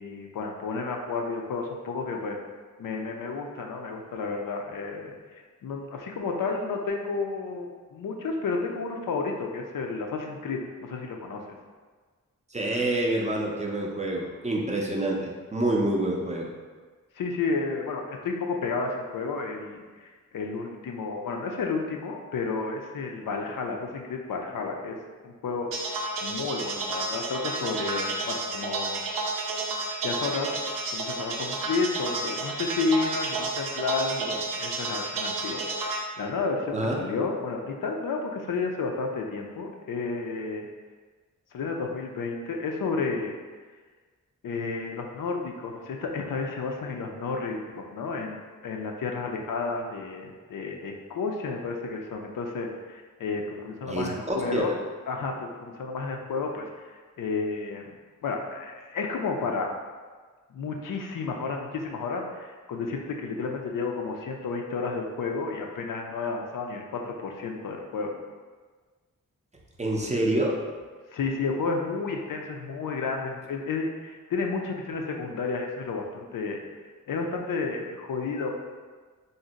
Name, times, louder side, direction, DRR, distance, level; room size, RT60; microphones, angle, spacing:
voice 1, 0.0-2.4 2.8-5.2 5.6-11.4 17.2-25.0 25.2-25.7 26.2-29.0 30.0-30.5 30.8-40.6 41.5-43.3 44.4-54.7 55.1-57.9 58.2-59.7 60.5-68.1 71.1-76.6 77.1-78.5, left 4 dB, 70° left, 1 dB, 0.5 m, -31 dB
voice 2, 12.5-16.5 36.7-37.0 53.9-54.6 69.8-70.6, right 1 dB, 20° right, -2 dB, 0.4 m, -27 dB
sound 1, 25.7-36.0, right 3 dB, 80° right, 0.5 m, -31 dB
2.6 x 2.1 x 3.9 m, 1.4 s
cardioid pair, 75°, 34 cm